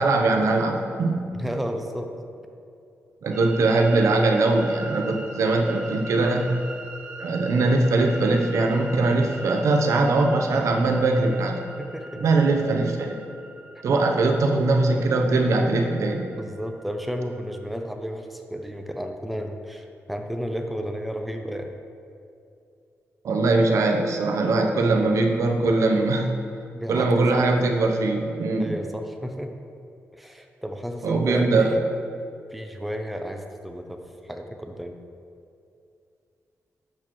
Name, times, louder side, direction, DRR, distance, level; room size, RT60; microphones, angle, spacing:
voice 1, 0.0-1.3 3.2-6.6 7.2-11.6 12.2-13.2 13.8-16.3 23.2-26.3 26.9-28.8 31.0-31.7, right 2 dB, 80° right, 2 dB, 0.8 m, -21 dB
voice 2, 1.3-2.1 11.8-12.2 16.3-21.7 26.7-27.1 27.3-27.4 28.6-29.5 30.1-31.9 32.5-34.9, equal, ahead, 4 dB, 0.6 m, -32 dB
sound 1, 3.3-17.6, right 2 dB, 20° right, 1.2 m, -42 dB
10.5 x 6.5 x 3.1 m, 2.5 s
wide cardioid pair, 115°, 5 cm